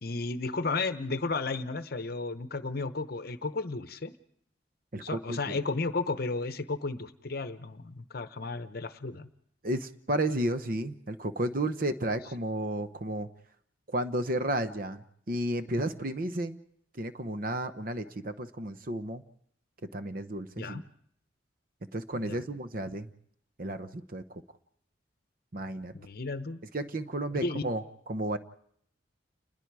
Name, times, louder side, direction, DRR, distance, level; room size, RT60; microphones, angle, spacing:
voice 1, 0.0-4.1 5.0-9.3 20.6-20.8 22.1-22.4 25.9-26.6 27.3-27.6, left 3 dB, 50° left, 11 dB, 0.9 m, -33 dB
voice 2, 4.9-5.5 9.6-13.3 13.9-16.6 16.9-19.2 19.9-20.8 21.9-23.1 23.6-24.4 25.5-25.9 26.7-28.4, right 1 dB, 45° right, 11 dB, 0.9 m, -32 dB
29.5 x 20.5 x 4.8 m, 0.70 s
head